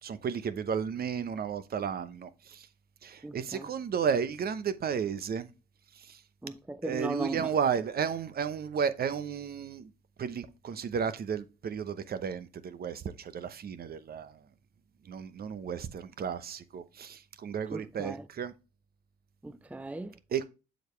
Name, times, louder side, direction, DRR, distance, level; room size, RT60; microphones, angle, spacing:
voice 1, 0.0-2.7 3.0-5.5 5.9-6.2 6.8-9.9 10.2-14.5 15.0-18.5 20.3-20.5, right 7 dB, 50° right, 0.8 m, -33 dB
voice 2, 3.2-3.6 6.4-7.5 17.7-18.2 19.4-20.1, right 2 dB, 5° right, 0.5 m, -37 dB
7.7 x 5.1 x 3.1 m
supercardioid pair, 65°, 20 cm